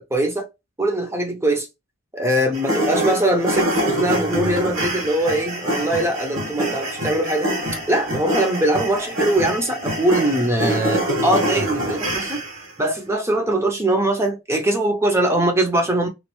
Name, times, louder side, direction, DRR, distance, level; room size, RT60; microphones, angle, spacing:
voice 1, 0.1-0.5 0.8-1.7 2.1-7.5 7.9-12.4 12.8-16.1, right 1 dB, 10° right, 0.6 m, -21 dB
sound 1, 2.5-12.7, right 1 dB, 80° right, 1.5 m, -25 dB
3.0 x 2.5 x 3.0 m
head